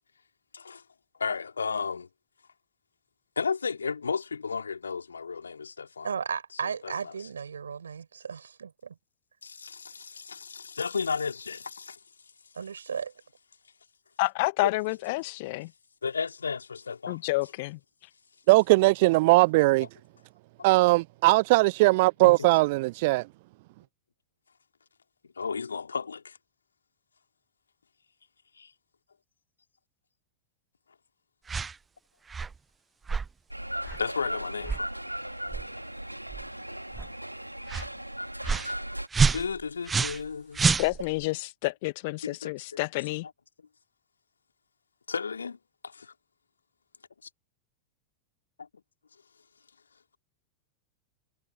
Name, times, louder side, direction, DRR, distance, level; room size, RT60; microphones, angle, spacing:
voice 1, 1.2-2.1 3.4-6.1 6.8-7.1 9.4-12.0 14.6-14.7 16.0-17.2 22.2-22.5 25.2-26.4 28.6-28.7 34.0-34.9 38.7-38.8 39.3-40.7 42.2-42.5 45.1-45.6 45.8-46.1 48.6-48.7, left 5 dB, 75° left, 3.1 m, -33 dB
voice 2, 6.0-9.0 12.6-13.1, right 6 dB, 70° right, 5.5 m, -35 dB
voice 3, 14.2-15.7 17.1-17.8 40.8-43.3, left 23 dB, 50° left, 1.1 m, -29 dB
voice 4, 18.5-19.9 20.6-23.3, right 22 dB, 50° right, 0.3 m, -20 dB
sound 1, 31.5-31.7 32.3-32.6 33.1-33.3 33.9-34.0 34.6-34.9 35.5-35.7 36.3-36.5 36.9-37.1 37.7-37.9 38.4-38.7 39.1-40.3 40.5-41.2, right 5 dB, 15° right, 0.8 m, -27 dB
sound 2, 33.5-39.1, right 1 dB, 90° right, 3.7 m, -37 dB
figure-of-eight pair, 90°, 0 cm